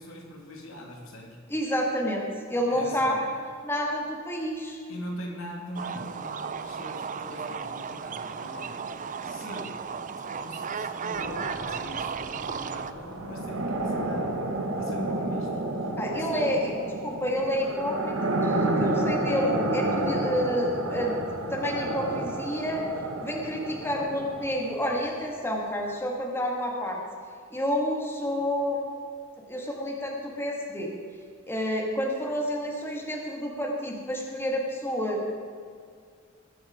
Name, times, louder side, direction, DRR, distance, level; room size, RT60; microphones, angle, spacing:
voice 1, 0.0-1.4 2.7-3.2 4.9-8.9 9.2-9.9 10.2-14.4 14.8-16.5, left 1 dB, 80° left, 0 dB, 2.6 m, -42 dB
voice 2, 1.5-3.2 3.6-4.8 15.9-16.7 17.0-22.9 23.2-27.0 27.5-28.8 29.5-30.9 31.5-35.3, equal, 10° left, -1 dB, 1.8 m, -29 dB
sound 1, 5.7-12.9, right 6 dB, 40° right, 0.5 m, -35 dB
sound 2, 11.1-25.0, right 2 dB, 75° right, 1.5 m, -30 dB
20.5 x 7.4 x 5.0 m, 2.2 s
head